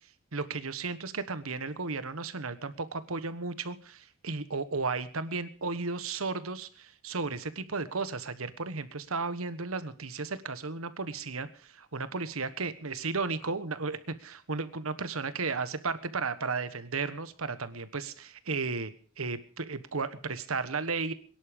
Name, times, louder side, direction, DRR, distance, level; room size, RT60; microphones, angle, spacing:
voice 1, 0.3-21.1, right 4 dB, 90° right, 13 dB, 1.3 m, -34 dB
22.0 x 11.0 x 5.3 m, 0.41 s
head